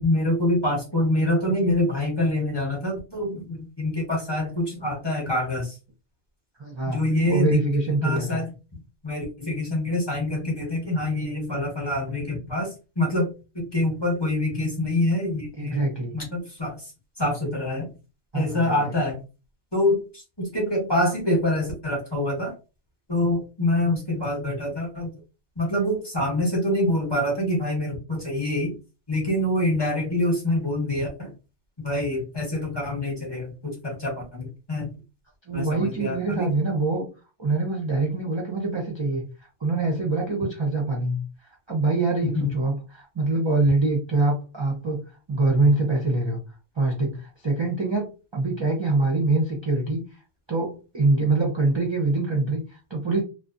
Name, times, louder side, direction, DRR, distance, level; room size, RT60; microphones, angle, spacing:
voice 1, 0.0-5.8 6.9-7.7 8.0-8.5 9.0-12.7 13.0-13.3 13.5-15.9 16.1-16.7 17.2-17.9 18.3-19.2 19.7-22.5 23.1-25.1 25.6-28.7 29.1-31.3 31.8-34.9 35.5-36.5 42.3-42.5, left 1 dB, 25° left, -1 dB, 0.9 m, -25 dB
voice 2, 6.6-7.0 7.3-8.5 15.5-16.2 18.3-18.8 35.5-37.1 37.4-39.2 39.6-41.2 41.7-45.0 45.3-46.4 46.8-50.0 50.5-53.2, right 3 dB, 40° right, -1 dB, 0.4 m, -24 dB
2.5 x 2.1 x 2.4 m, 0.31 s
omnidirectional pair, 1.2 m